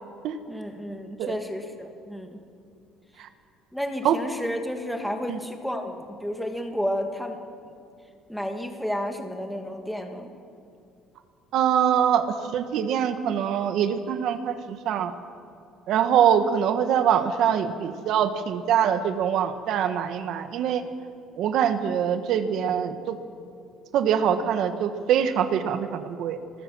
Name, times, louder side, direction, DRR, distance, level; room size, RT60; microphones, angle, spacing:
voice 1, 0.5-2.4 3.7-7.4 8.3-10.3, equal, ahead, 4 dB, 1.8 m, -31 dB
voice 2, 11.5-15.1 15.9-20.8 21.4-23.2 23.9-26.4, right 9 dB, 55° right, 8 dB, 1.5 m, -24 dB
26.0 x 20.5 x 6.3 m, 2.5 s
cardioid pair, 155°, 0 cm